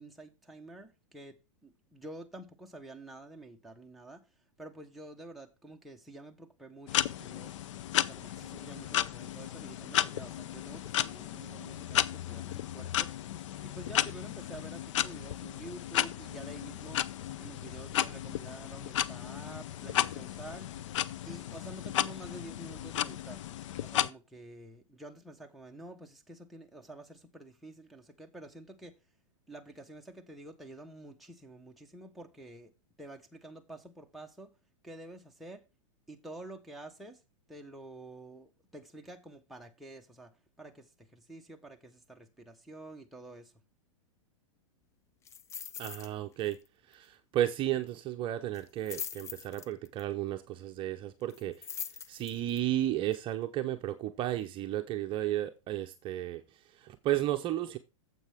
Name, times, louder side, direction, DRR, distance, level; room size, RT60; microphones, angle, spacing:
voice 1, 0.0-4.2 4.6-7.5 8.0-13.1 13.6-17.0 17.4-20.7 21.3-23.4 23.8-28.9 29.5-32.7 33.0-34.5 34.8-35.6 36.1-37.2 37.5-43.5, right 2 dB, ahead, 1.2 m, -49 dB
sound 1, 6.9-24.1, left 11 dB, 65° left, 0.6 m, -34 dB
sound 2, 45.3-46.1 46.4-46.7 46.9-47.0 48.5-50.0 51.3-52.6 53.1-53.2, left 7 dB, 15° left, 0.4 m, -42 dB
voice 2, 45.8-46.6 46.9-51.7 52.1-56.4 56.8-57.8, right 13 dB, 30° right, 0.8 m, -33 dB
9.7 x 7.6 x 3.6 m
hypercardioid pair, 130°, 17 cm